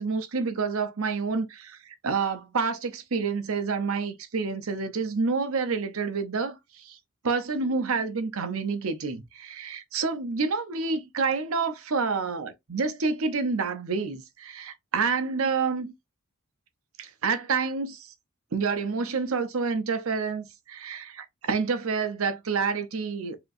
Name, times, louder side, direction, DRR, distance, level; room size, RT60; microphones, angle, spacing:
voice 1, 0.0-7.0 7.2-15.9 17.0-18.1 18.5-23.4, right 4 dB, 70° right, 0.7 m, -28 dB
5.0 x 2.9 x 2.5 m
head